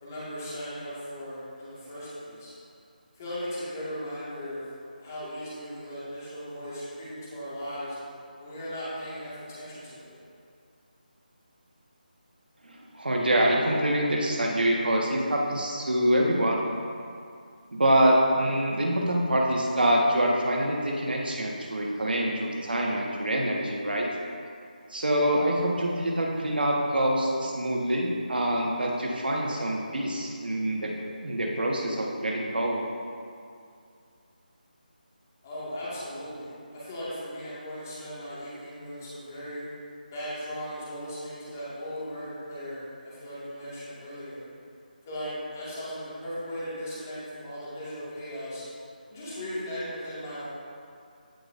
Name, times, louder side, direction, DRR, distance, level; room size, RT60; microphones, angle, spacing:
voice 1, 0.0-2.5 3.1-4.6 5.0-8.0 8.4-10.2 35.4-39.6 40.1-44.4 45.1-48.6 49.1-50.5, equal, 20° left, -10 dB, 2.0 m, -37 dB
voice 2, 12.6-16.6 17.7-24.1 24.9-30.9 31.2-32.8, right 1 dB, 90° right, -1 dB, 1.6 m, -25 dB
15.5 x 5.3 x 2.7 m, 2.4 s
figure-of-eight pair, 175°, 5 cm